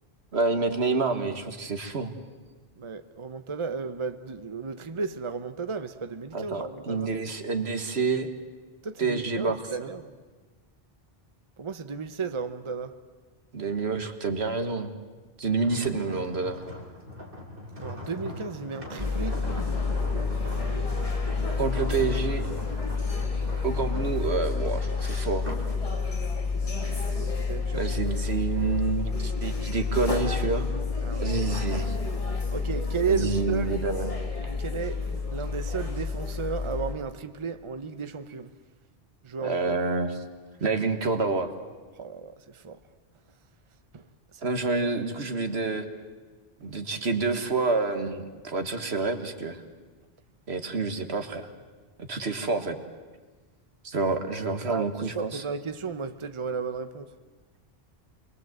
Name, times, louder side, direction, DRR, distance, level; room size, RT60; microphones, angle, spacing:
voice 1, 0.3-2.1 6.3-8.3 9.0-9.9 13.5-14.9 15.4-16.6 21.6-22.4 23.6-25.5 27.7-30.7 31.2-32.0 33.1-34.2 39.4-40.1 40.6-41.5 44.4-45.9 46.6-49.6 50.5-51.5 52.0-52.8 53.8-55.4, right 4 dB, 90° right, 1.9 m, -28 dB
voice 2, 2.8-7.1 8.8-10.1 11.6-13.0 17.8-19.4 20.7-20.9 27.0-28.1 31.0-31.4 32.5-33.8 34.4-38.5 39.2-39.8 42.0-42.8 43.9-44.4 54.7-57.2, right 5 dB, 30° right, 0.9 m, -34 dB
sound 1, 15.6-25.8 26.2-26.5, left 1 dB, 60° right, 3.3 m, -41 dB
sound 2, 19.0-37.0, left 4 dB, 35° left, 2.6 m, -29 dB
27.5 x 22.0 x 8.0 m
omnidirectional pair, 1.0 m